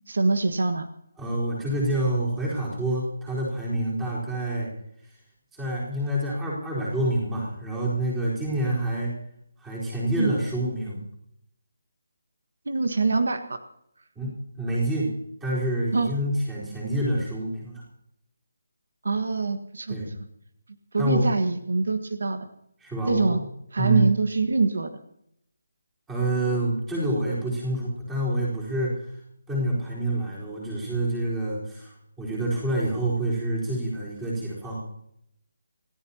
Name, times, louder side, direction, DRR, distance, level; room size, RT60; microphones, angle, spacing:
voice 1, 0.1-0.9 10.2-10.3 12.6-13.6 15.9-16.1 19.0-20.0 20.9-22.5 23.1-23.4 23.7-25.0, right 3 dB, 75° right, 8 dB, 1.5 m, -24 dB
voice 2, 1.2-4.7 5.5-9.1 9.6-11.0 14.2-15.1 15.4-17.8 19.9-20.1 20.9-21.4 22.8-23.5 23.8-24.1 26.1-28.9 29.5-34.8, right 1 dB, 5° right, -6 dB, 4.2 m, -27 dB
27.0 x 15.0 x 2.9 m, 0.74 s
hypercardioid pair, 175°, 0 cm